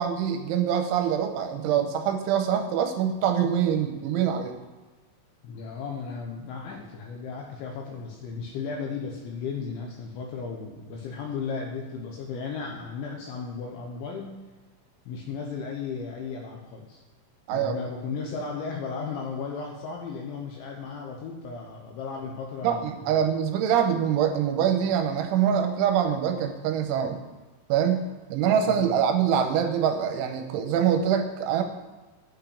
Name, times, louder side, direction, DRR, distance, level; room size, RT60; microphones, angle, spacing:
voice 1, 0.0-4.5 17.5-17.7 22.6-27.2 27.7-31.6, right 8 dB, 85° right, 6 dB, 3.1 m, -24 dB
voice 2, 5.4-14.3 15.1-17.0 17.5-23.2 28.6-28.9, left 5 dB, 75° left, 0 dB, 3.2 m, -35 dB
8.8 x 6.0 x 8.2 m, 1.3 s
omnidirectional pair, 5.5 m